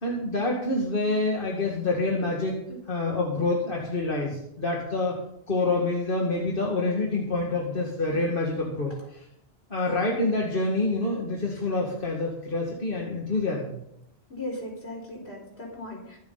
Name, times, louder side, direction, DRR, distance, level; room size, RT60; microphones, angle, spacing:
voice 1, 0.0-5.2 5.5-9.2 9.7-13.7, left 2 dB, 55° left, -2 dB, 2.3 m, -27 dB
voice 2, 14.3-16.2, left 1 dB, 75° left, -1 dB, 4.6 m, -37 dB
24.0 x 8.5 x 4.1 m, 0.76 s
omnidirectional pair, 1.1 m